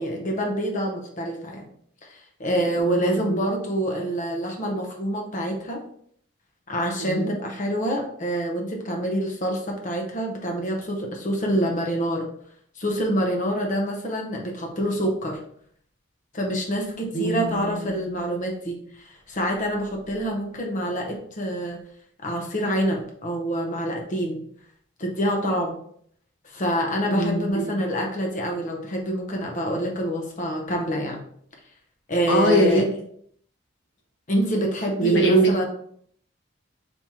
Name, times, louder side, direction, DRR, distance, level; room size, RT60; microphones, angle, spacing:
voice 1, 0.0-1.7 2.0-5.8 6.7-12.3 12.8-15.4 16.3-21.8 22.2-24.4 25.0-25.7 26.4-31.2 32.1-32.8 34.3-35.7, equal, 35° left, 1 dB, 0.7 m, -26 dB
voice 2, 2.9-3.4 7.0-7.3 17.1-17.9 27.0-27.7 32.3-32.8 35.0-35.7, right 1 dB, 60° left, 0 dB, 1.2 m, -22 dB
4.4 x 2.9 x 3.6 m, 0.64 s
head